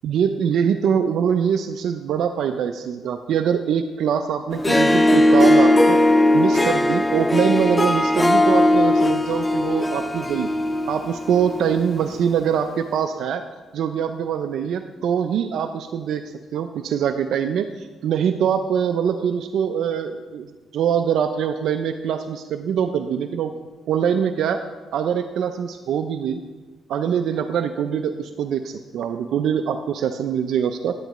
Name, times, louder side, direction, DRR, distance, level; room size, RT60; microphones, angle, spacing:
voice 1, 0.0-6.0 6.3-10.5 10.9-13.4 13.7-16.2 16.5-20.5 20.7-23.5 23.9-24.6 24.9-26.4 26.9-30.9, right 8 dB, 75° right, 7 dB, 0.4 m, -23 dB
Harp, 4.5-11.9, left 1 dB, 15° left, 0.4 m, -18 dB
10.5 x 9.7 x 3.0 m, 1.2 s
cardioid pair, 90°, 0 cm